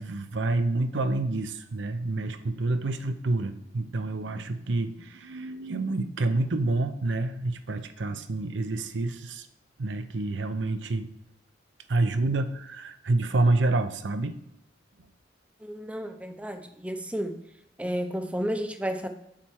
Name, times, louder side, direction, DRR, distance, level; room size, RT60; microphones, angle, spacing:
voice 1, 0.0-9.5 9.8-11.1 11.9-14.4, right 2 dB, 75° right, 9 dB, 0.6 m, -28 dB
voice 2, 15.6-17.4 17.8-19.1, equal, 5° right, 7 dB, 0.6 m, -32 dB
7.6 x 4.3 x 6.2 m, 0.82 s
head